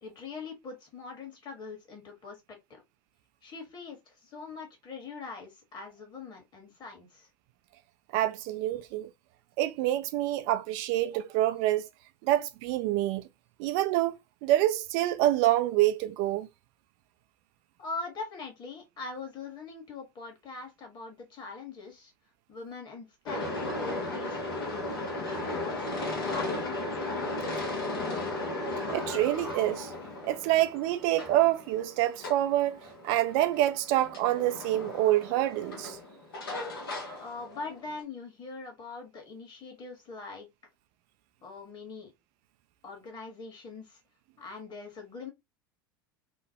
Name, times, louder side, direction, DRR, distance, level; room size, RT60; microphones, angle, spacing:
voice 1, 0.0-2.8 3.4-7.3 17.8-22.1 22.5-24.7 25.2-26.8 37.2-40.5 41.4-42.1 42.8-44.0 44.4-45.3, left 4 dB, 40° left, 1.5 m, -42 dB
voice 2, 8.1-9.1 9.6-11.9 12.2-13.3 13.6-16.5 28.9-29.9 30.2-32.8 33.0-36.0, right 14 dB, 60° right, 0.4 m, -27 dB
sound 1, 23.3-38.0, left 2 dB, 80° left, 1.1 m, -36 dB
2.9 x 2.2 x 2.8 m
hypercardioid pair, 80°, 12 cm